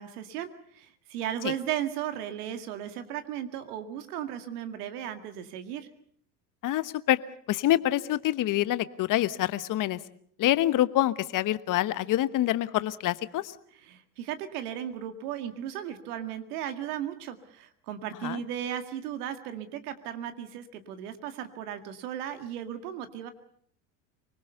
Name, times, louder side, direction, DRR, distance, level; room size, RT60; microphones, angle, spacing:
voice 1, 0.0-5.9 13.8-23.3, right 10 dB, 70° right, 8 dB, 2.1 m, -36 dB
voice 2, 6.6-7.2 7.5-10.0 10.4-13.5 18.2-18.4, left 14 dB, 40° left, 15 dB, 1.1 m, -26 dB
24.5 x 20.5 x 6.8 m, 0.63 s
hypercardioid pair, 85°, 47 cm